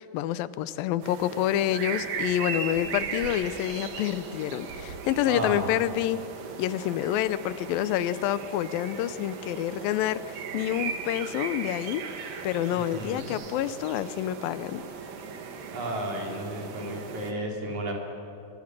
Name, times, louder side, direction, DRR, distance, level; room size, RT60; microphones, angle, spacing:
voice 1, 0.0-6.2 6.6-10.2 10.5-12.0 12.4-14.8, left 12 dB, 90° left, 15 dB, 2.5 m, -28 dB
sound 1, 1.0-17.3, right 5 dB, 75° right, 3.5 m, -37 dB
voice 2, 5.2-5.7 12.7-13.3 15.7-17.9, right 1 dB, 55° right, 0 dB, 4.6 m, -33 dB
24.5 x 24.5 x 7.5 m, 2.9 s
omnidirectional pair, 4.0 m